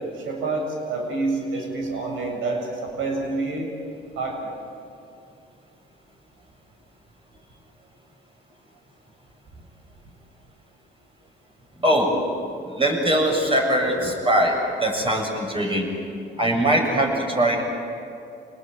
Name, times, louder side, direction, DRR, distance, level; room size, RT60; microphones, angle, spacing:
voice 1, 0.0-3.7 4.2-4.5, right 3 dB, 90° right, 1 dB, 7.4 m, -28 dB
voice 2, 11.8-12.2 12.6-16.1 16.4-17.6, right 1 dB, 25° right, 1 dB, 7.7 m, -22 dB
28.5 x 20.0 x 9.5 m, 2.7 s
cardioid pair, 90°, 20 cm